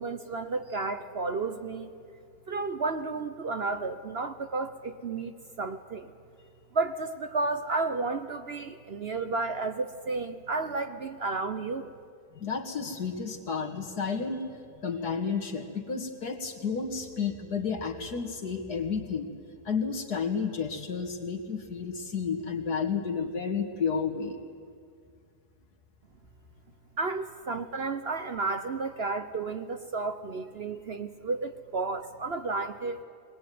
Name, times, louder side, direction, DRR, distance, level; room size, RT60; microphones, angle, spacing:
voice 1, 0.0-1.9 2.5-6.1 6.7-11.9 27.0-33.0, right 3 dB, 45° right, 8 dB, 0.9 m, -32 dB
voice 2, 12.3-14.4 14.8-19.3 19.6-24.4, left 5 dB, 75° left, 2 dB, 2.6 m, -31 dB
22.5 x 20.5 x 9.4 m, 2.2 s
omnidirectional pair, 1.7 m